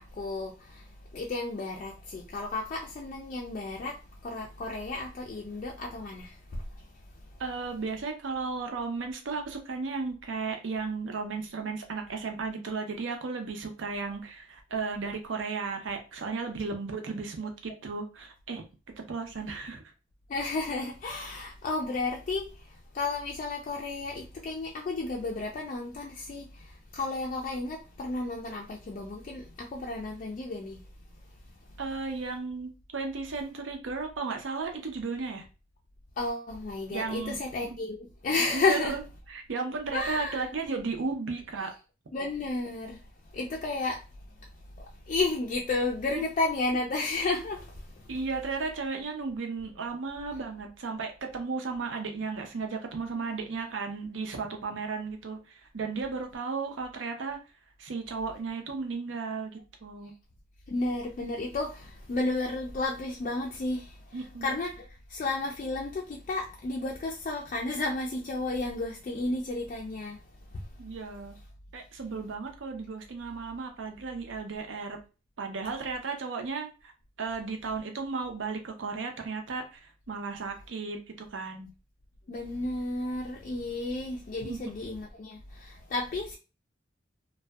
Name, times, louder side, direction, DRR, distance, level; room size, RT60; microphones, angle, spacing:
voice 1, 0.0-6.9 7.3-7.4 20.3-30.8 36.2-39.0 39.9-40.5 42.1-44.0 44.8-48.1 60.7-70.7 82.3-86.3, left 3 dB, 40° left, 0.3 m, -33 dB
voice 2, 7.4-18.6 19.1-19.8 31.8-35.5 36.9-37.8 38.5-38.9 39.3-41.7 46.1-46.3 48.1-57.4 57.8-60.1 64.1-64.6 70.8-71.3 71.7-75.0 75.4-76.9 77.2-81.7 84.4-84.6, right 4 dB, 90° right, 0.5 m, -35 dB
2.5 x 2.1 x 2.3 m
head